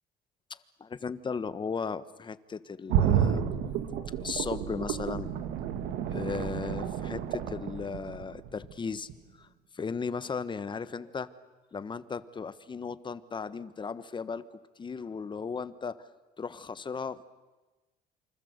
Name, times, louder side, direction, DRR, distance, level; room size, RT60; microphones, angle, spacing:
voice 1, 0.5-3.4 4.2-5.3 6.0-9.1 9.4-9.5 9.7-11.3 11.7-16.1 16.4-17.2, left 5 dB, 30° left, 14 dB, 1.3 m, -36 dB
sound 1, 2.9-8.7 9.1-9.2, right 8 dB, 90° right, 2.3 m, -30 dB
28.0 x 25.5 x 8.2 m, 1.2 s
cardioid pair, 110°, 17 cm